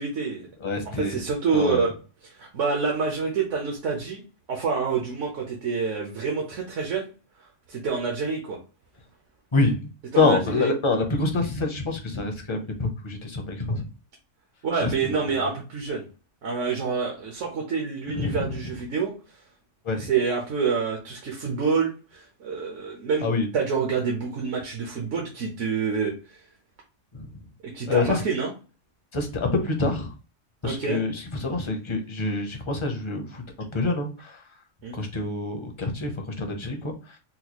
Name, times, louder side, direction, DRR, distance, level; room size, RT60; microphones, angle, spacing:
voice 1, 0.0-0.5 0.9-1.9 2.2-4.2 4.5-7.1 7.4-8.6 10.1-10.7 14.6-16.0 16.4-19.4 19.9-23.3 23.5-26.4 27.6-28.5 30.6-31.0 34.8-35.0, right 5 dB, 75° right, 0 dB, 1.1 m, -27 dB
voice 2, 0.6-1.2 1.5-1.8 9.5-13.9 14.8-14.9 18.1-18.7 19.8-20.1 23.2-23.5 27.1-27.3 27.9-28.2 29.1-30.1 30.6-33.4 33.7-34.4 34.9-37.2, left 3 dB, 35° left, 4 dB, 0.5 m, -26 dB
4.1 x 2.3 x 2.9 m, 0.34 s
omnidirectional pair, 1.3 m